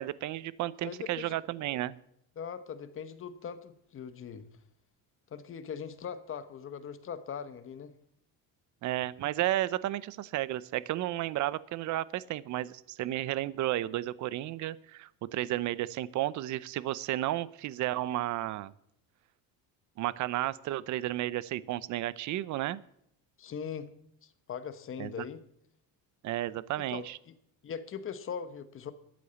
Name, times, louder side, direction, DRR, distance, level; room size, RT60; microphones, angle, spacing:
voice 1, 0.0-2.0 8.8-18.7 20.0-22.8 25.0-25.2 26.2-27.2, right 14 dB, 50° right, 19 dB, 0.7 m, -33 dB
voice 2, 0.8-1.4 2.4-4.5 5.3-7.9 23.4-23.9 24.2-25.4 26.9-27.3 27.6-28.9, left 7 dB, 35° left, 12 dB, 1.1 m, -40 dB
13.0 x 8.3 x 6.9 m, 0.73 s
cardioid pair, 155°, 38 cm